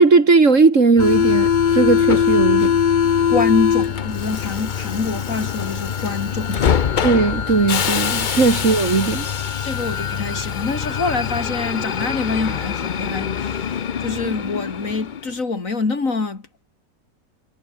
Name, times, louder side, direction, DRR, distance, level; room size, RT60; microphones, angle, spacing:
voice 1, 0.0-2.8 7.0-9.3, right 4 dB, 45° right, 2.4 m, -17 dB
Subway metro underground, 1.0-15.3, left 7 dB, 70° left, 0.4 m, -22 dB
voice 2, 3.3-6.8 9.6-16.4, left 3 dB, 45° left, 3.0 m, -25 dB
omnidirectional pair, 1.9 m